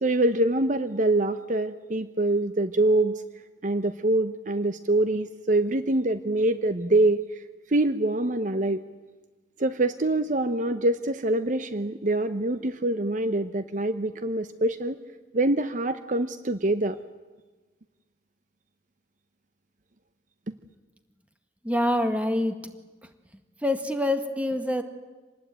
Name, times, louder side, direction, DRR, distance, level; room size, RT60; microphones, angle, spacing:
voice 1, 0.0-3.2 3.6-7.2 7.7-8.8 9.6-15.0 15.3-17.0 20.5-20.6, right 2 dB, 45° right, 11 dB, 0.8 m, -25 dB
voice 2, 21.6-22.6 23.6-24.8, left 1 dB, 10° right, 7 dB, 1.9 m, -25 dB
26.5 x 20.0 x 9.2 m, 1.3 s
head